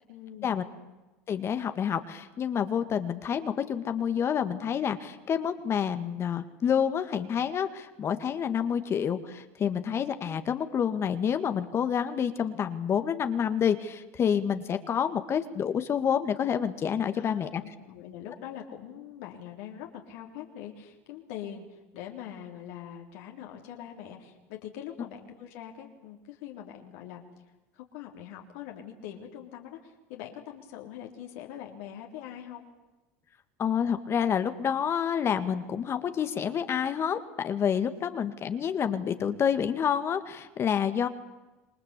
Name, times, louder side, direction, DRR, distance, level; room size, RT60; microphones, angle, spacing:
voice 1, 0.1-0.7 17.1-27.2 27.7-32.7, left 10 dB, 75° left, 1 dB, 3.7 m, -43 dB
voice 2, 1.3-17.6 33.6-41.1, left 8 dB, 40° left, 9 dB, 1.9 m, -28 dB
27.5 x 21.5 x 8.4 m, 1.1 s
supercardioid pair, 95°, 7 cm